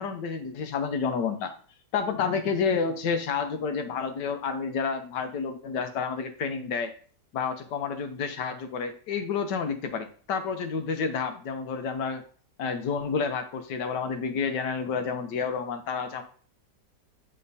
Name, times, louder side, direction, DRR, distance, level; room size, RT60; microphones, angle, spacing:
voice 1, 0.0-1.6 1.9-6.9 7.3-12.2 12.6-16.2, left 5 dB, 80° left, 7 dB, 1.5 m, -30 dB
8.7 x 4.4 x 2.7 m, 0.43 s
omnidirectional pair, 1.8 m